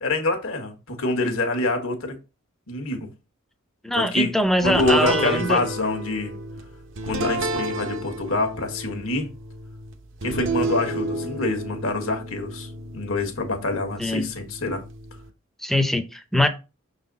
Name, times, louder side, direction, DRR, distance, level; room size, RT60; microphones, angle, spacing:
voice 1, 0.0-2.2 2.7-3.1 3.9-4.3 4.6-6.4 7.0-9.3 10.2-14.8, left 2 dB, 70° left, 1.4 m, -26 dB
voice 2, 3.8-5.6 14.0-14.3 15.6-16.5, left 1 dB, ahead, 0.6 m, -22 dB
sound 1, 4.7-15.3, right 2 dB, 60° right, 0.8 m, -31 dB
6.2 x 4.1 x 3.9 m
head